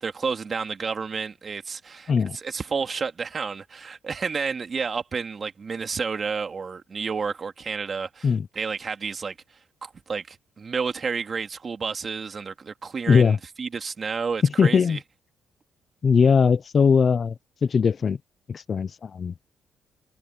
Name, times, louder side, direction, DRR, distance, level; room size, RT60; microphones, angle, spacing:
voice 1, 0.0-9.4 9.8-15.0, right 5 dB, 40° right, 2.4 m, -31 dB
voice 2, 13.1-13.4 14.6-15.0 16.0-17.3 17.6-18.2 18.5-19.3, left 6 dB, 45° left, 0.6 m, -20 dB
cardioid pair, 90°, 0 cm